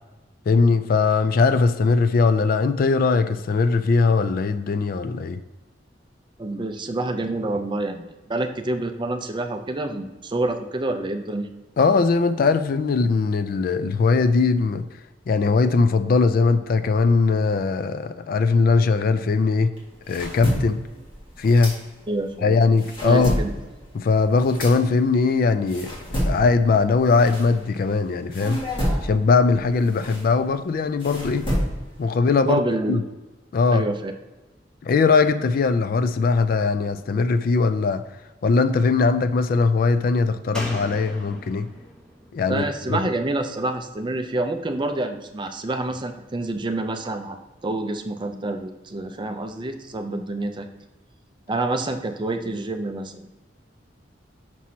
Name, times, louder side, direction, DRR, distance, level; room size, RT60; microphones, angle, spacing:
voice 1, 0.5-5.4 11.8-14.9 15.3-19.7 20.1-20.8 21.4-21.8 22.4-23.3 23.9-25.9 26.3-28.6 29.0-31.5 32.0-32.6 32.9-33.0 33.5-33.8 34.8-38.0 38.4-41.7 42.3-42.6 42.9-43.0, left 4 dB, 50° left, 0.3 m, -20 dB
voice 2, 6.4-11.5 22.1-22.6 23.0-23.5 32.4-33.0 33.7-34.1 42.5-47.4 47.6-50.7 51.5-53.3, right 2 dB, 25° right, 0.5 m, -27 dB
sound 1, 19.7-22.3 22.6-27.9 28.3-32.0, equal, 30° left, 1.7 m, -29 dB
Slam, 40.5-44.0 44.3-44.4, equal, 5° left, 0.9 m, -39 dB
6.1 x 5.9 x 2.8 m
head